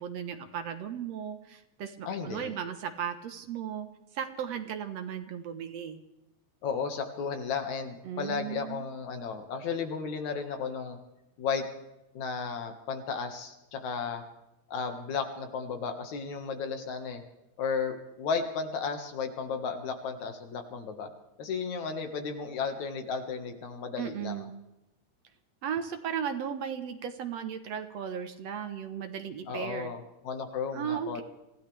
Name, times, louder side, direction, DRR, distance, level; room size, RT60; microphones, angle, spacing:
voice 1, 0.0-3.9 4.1-6.0 8.0-8.9 24.0-24.5 25.6-30.0 30.7-31.2, right 8 dB, 65° right, 8 dB, 2.2 m, -36 dB
voice 2, 2.0-2.5 6.6-11.0 11.4-11.7 12.1-14.2 14.7-17.2 17.6-21.1 21.4-24.5 29.5-31.2, left 5 dB, 75° left, 5 dB, 3.1 m, -34 dB
26.0 x 16.0 x 3.4 m, 0.91 s
omnidirectional pair, 3.4 m